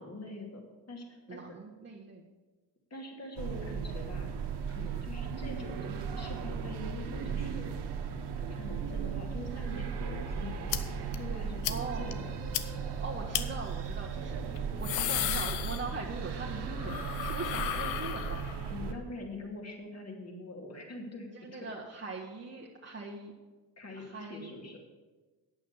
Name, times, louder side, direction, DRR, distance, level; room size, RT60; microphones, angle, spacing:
voice 1, 0.0-1.4 2.9-4.3 4.7-7.8 8.1-10.7 11.2-12.4 18.7-21.6 23.8-24.8, left 2 dB, 30° left, 1 dB, 2.8 m, -44 dB
voice 2, 1.3-2.2 11.7-12.1 13.0-18.4 21.4-23.3 23.9-24.5, right 3 dB, 25° right, -4 dB, 1.5 m, -41 dB
sound 1, 3.4-18.9, right 6 dB, 55° right, 1.3 m, -36 dB
sound 2, 10.7-10.8 11.1-11.2 11.6-11.8 12.1-12.2 12.5-12.6 13.3-13.4 14.6-16.2 16.5-18.7, left 12 dB, 85° left, 0.7 m, -34 dB
9.1 x 7.0 x 6.9 m, 1.2 s
hypercardioid pair, 50°, 49 cm